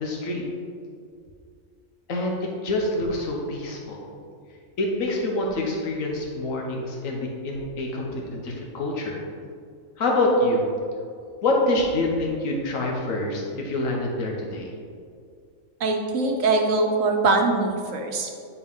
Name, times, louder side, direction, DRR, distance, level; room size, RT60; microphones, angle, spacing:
voice 1, 0.0-0.4 2.1-4.0 4.8-9.2 10.0-10.6 11.4-14.7, left 2 dB, 90° left, -1 dB, 1.4 m, -26 dB
voice 2, 15.8-18.3, right 3 dB, 75° right, 3 dB, 1.2 m, -22 dB
9.7 x 4.4 x 3.6 m, 2.3 s
omnidirectional pair, 1.3 m